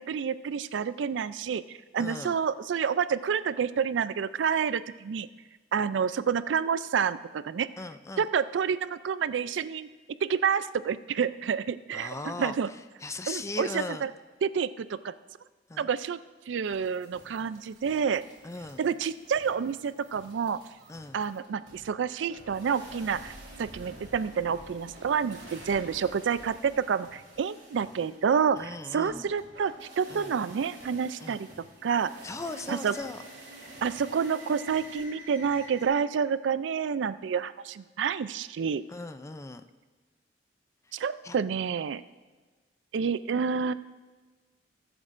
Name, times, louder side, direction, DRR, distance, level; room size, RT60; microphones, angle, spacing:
voice 1, 0.0-5.3 5.7-7.7 8.2-9.9 10.2-12.7 13.3-14.1 14.4-15.1 15.8-16.2 16.5-18.2 18.8-20.6 21.1-31.5 31.8-32.1 32.7-32.9 33.8-38.8 40.9-42.0 42.9-43.7, right 6 dB, 85° right, 15 dB, 0.4 m, -29 dB
voice 2, 2.0-2.3 7.8-8.3 11.9-12.6 13.0-14.1 15.7-15.9 18.4-18.8 20.9-21.2 28.6-29.3 30.1-30.3 31.2-31.4 32.2-33.2 38.9-39.6 41.2-41.3, left 3 dB, 15° left, 9 dB, 0.4 m, -38 dB
sound 1, 16.6-35.9, right 2 dB, 65° right, 3.3 m, -49 dB
20.5 x 8.0 x 2.6 m, 1.3 s
head